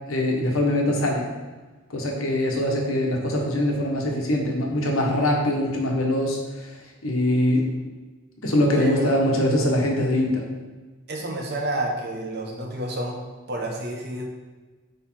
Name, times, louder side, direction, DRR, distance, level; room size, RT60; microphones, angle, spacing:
voice 1, 0.1-1.3 1.9-6.7 7.0-7.6 8.4-10.5, left 1 dB, 90° left, 0 dB, 1.4 m, -23 dB
voice 2, 8.7-9.1 11.1-13.2 13.5-14.2, right 1 dB, 55° right, 0 dB, 1.2 m, -29 dB
8.7 x 3.4 x 4.5 m, 1.3 s
head